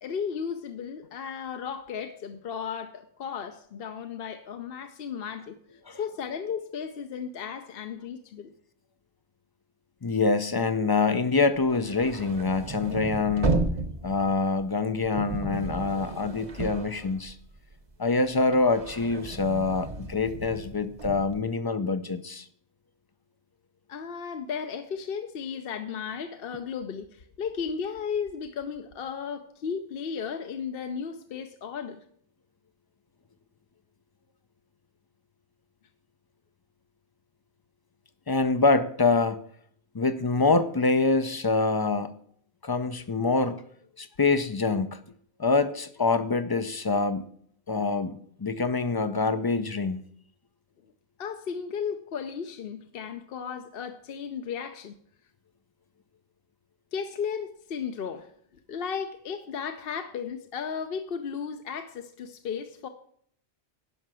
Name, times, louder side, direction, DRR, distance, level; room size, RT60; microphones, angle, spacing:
voice 1, 0.0-5.6 5.9-8.5 23.9-32.0 51.2-55.0 56.9-58.3 58.7-62.9, left 6 dB, 60° left, 0.8 m, -35 dB
voice 2, 10.0-13.7 14.0-17.4 18.0-22.5 38.3-39.4 39.9-42.2 42.6-43.6 44.0-45.0 45.4-47.2 47.7-50.0, left 3 dB, 35° left, 0.4 m, -25 dB
sound 1, 11.6-17.7 18.1-21.4, right 3 dB, 35° right, 0.9 m, -33 dB
11.0 x 5.7 x 7.5 m
omnidirectional pair, 1.1 m